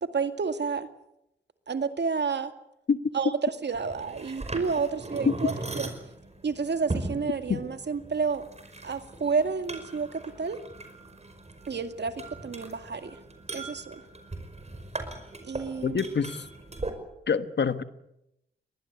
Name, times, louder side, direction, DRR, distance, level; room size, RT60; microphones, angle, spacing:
voice 1, 0.0-0.9 1.7-2.5 3.1-5.9 6.4-8.5 8.8-10.6 11.7-13.2 13.5-14.0 15.4-16.0, right 5 dB, 65° right, 8 dB, 2.2 m, -30 dB
sound 1, 3.7-16.9, right 2 dB, 35° right, 5.2 m, -39 dB
voice 2, 15.8-16.5 17.3-17.8, left 6 dB, 65° left, 12 dB, 1.4 m, -25 dB
23.5 x 19.5 x 8.2 m, 0.83 s
cardioid pair, 50°, 20 cm